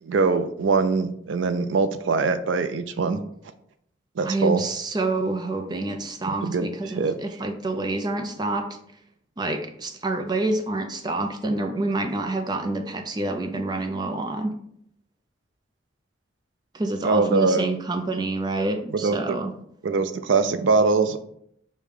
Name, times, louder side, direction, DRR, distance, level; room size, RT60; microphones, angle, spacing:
voice 1, 0.0-3.2 4.2-4.6 6.4-6.7 7.0-7.1 17.0-17.6 18.9-19.2 19.8-21.2, right 4 dB, 80° right, 10 dB, 0.4 m, -22 dB
voice 2, 4.2-8.8 9.4-14.6 16.7-19.5, right 2 dB, 20° right, 5 dB, 0.4 m, -27 dB
5.1 x 2.2 x 4.7 m, 0.70 s
head